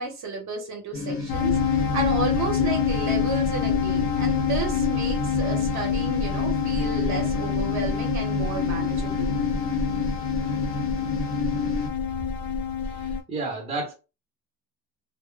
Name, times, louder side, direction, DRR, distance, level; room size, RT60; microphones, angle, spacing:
voice 1, 0.0-9.3, right 3 dB, 50° right, 0.9 m, -32 dB
sound 1, 0.9-11.9, left 3 dB, 35° left, 0.6 m, -30 dB
sound 2, 1.3-13.2, left 7 dB, 85° left, 0.8 m, -26 dB
voice 2, 12.8-13.9, right 3 dB, 15° right, 0.8 m, -32 dB
2.2 x 2.1 x 3.1 m
cardioid pair, 160°, 36 cm